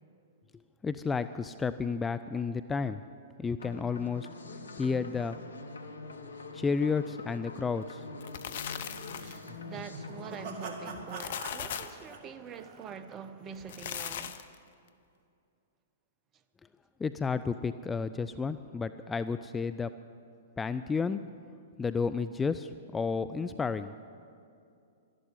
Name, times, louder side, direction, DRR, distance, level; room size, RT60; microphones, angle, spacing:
voice 1, 0.8-3.0 3.4-4.3 4.8-5.4 6.5-8.2 17.0-19.9 20.6-21.2 21.8-23.9, left 5 dB, 15° left, 0.4 m, -31 dB
sound 1, 3.6-11.1, left 3 dB, 75° left, 1.1 m, -45 dB
sound 2, 8.0-9.5 10.9-12.0 13.6-14.6, left 9 dB, 55° left, 0.8 m, -38 dB
sound 3, 9.1-13.3, right 4 dB, 45° right, 1.9 m, -44 dB
voice 2, 9.6-14.5, right 6 dB, 25° right, 0.9 m, -44 dB
12.5 x 11.5 x 9.8 m
figure-of-eight pair, 110°, 0 cm